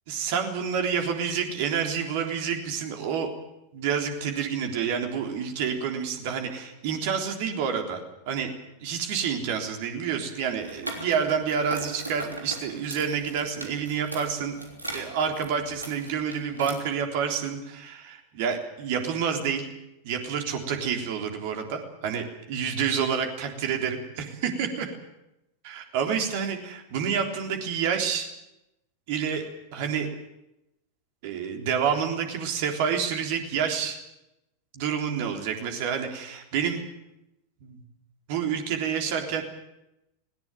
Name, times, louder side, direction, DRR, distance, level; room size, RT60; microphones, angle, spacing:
voice 1, 0.1-3.3 3.7-8.0 8.3-8.5 8.8-14.6 14.9-19.7 20.0-24.9 25.6-28.3 29.1-29.5 29.7-30.1 31.2-34.0 34.7-36.8 37.6-37.8 38.3-39.4, right 7 dB, 50° right, 4 dB, 3.6 m, -28 dB
sound 1, 10.6-16.7, right 2 dB, 80° right, 3.6 m, -39 dB
19.5 x 18.5 x 9.3 m, 0.90 s
figure-of-eight pair, 90°, 0 cm